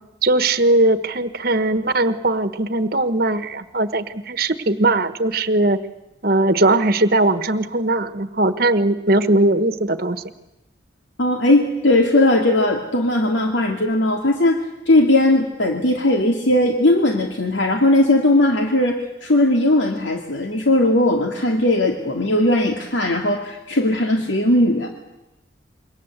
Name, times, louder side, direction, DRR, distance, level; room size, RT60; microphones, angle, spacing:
voice 1, 0.2-5.8 6.2-10.2, right 2 dB, 50° right, 11 dB, 1.3 m, -19 dB
voice 2, 11.2-14.6 14.9-24.9, left 1 dB, 75° left, 3 dB, 2.3 m, -18 dB
27.5 x 23.0 x 8.1 m, 0.95 s
head